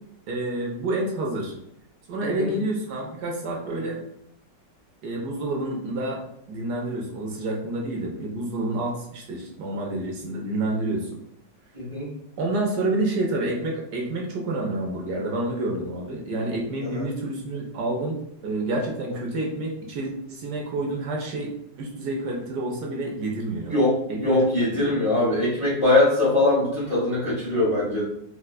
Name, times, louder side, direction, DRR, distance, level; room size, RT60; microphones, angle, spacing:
voice 1, 0.3-1.5 2.1-4.0 5.0-6.2 6.5-11.1 12.4-18.2 18.4-21.5 21.8-23.7 24.1-24.4 24.7-24.9, right 2 dB, 70° right, -1 dB, 1.1 m, -28 dB
voice 2, 2.2-2.5 11.7-12.1 16.8-17.0 19.1-19.2 23.7-28.0, left 2 dB, 30° left, -8 dB, 0.6 m, -22 dB
4.3 x 2.2 x 2.2 m, 0.76 s
omnidirectional pair, 1.9 m